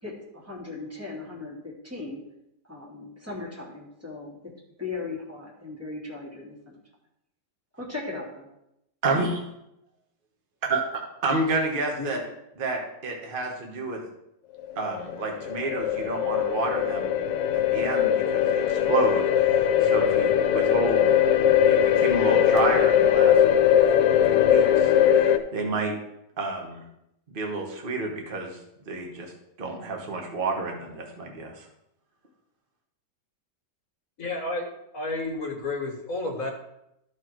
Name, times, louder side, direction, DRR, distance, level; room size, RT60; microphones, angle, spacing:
voice 1, 0.0-2.2 2.6-4.4 4.8-6.8 7.7-8.5, left 3 dB, 10° right, -4 dB, 2.5 m, -37 dB
voice 2, 9.0-9.4 10.7-12.2 12.6-14.0 14.8-17.2 17.5-21.1 21.7-23.3 24.2-25.9 26.4-26.8 27.3-28.6 28.9-29.3 29.6-31.6, right 3 dB, 30° right, 1 dB, 1.4 m, -29 dB
sound 1, 14.6-25.4, left 9 dB, 85° left, 1.4 m, -21 dB
voice 3, 34.2-36.5, left 2 dB, 50° left, 1 dB, 2.0 m, -31 dB
13.0 x 4.6 x 4.6 m, 0.82 s
omnidirectional pair, 1.9 m